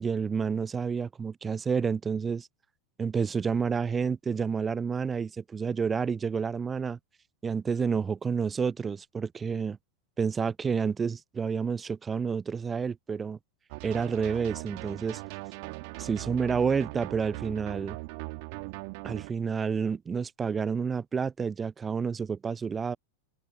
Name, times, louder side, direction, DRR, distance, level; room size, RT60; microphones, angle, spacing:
voice 1, 0.0-2.5 3.0-7.0 7.4-9.8 10.2-13.4 13.8-15.2 16.0-18.0 19.0-23.0, right 6 dB, 15° right, 0.4 m, -29 dB
sound 1, 13.7-19.3, right 31 dB, 45° right, 2.3 m, -40 dB
open air
figure-of-eight pair, 90°, 0 cm